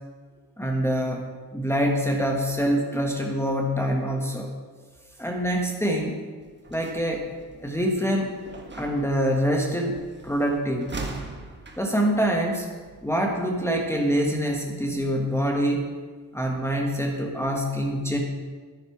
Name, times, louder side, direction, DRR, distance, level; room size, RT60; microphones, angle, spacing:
voice 1, 0.6-1.3 1.5-4.5 5.2-6.2 6.7-7.3 7.6-8.3 8.8-10.9 11.8-12.7 13.0-15.9 16.3-18.2, equal, 5° left, 0 dB, 1.4 m, -25 dB
sound 1, 6.4-13.7, right 3 dB, 25° right, 1.6 m, -42 dB
10.0 x 9.7 x 4.9 m, 1.5 s
supercardioid pair, 65°, 40 cm